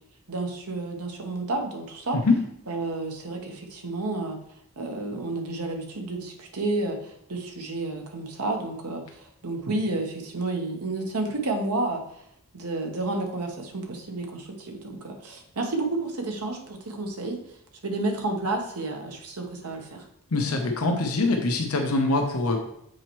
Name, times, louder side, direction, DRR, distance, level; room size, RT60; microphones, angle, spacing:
voice 1, 0.3-2.2 2.7-4.4 4.8-12.0 12.5-17.4 17.8-20.0, right 2 dB, 85° right, 3 dB, 1.0 m, -31 dB
voice 2, 20.3-22.6, left 2 dB, 75° left, 3 dB, 0.9 m, -23 dB
7.7 x 4.4 x 3.1 m, 0.75 s
head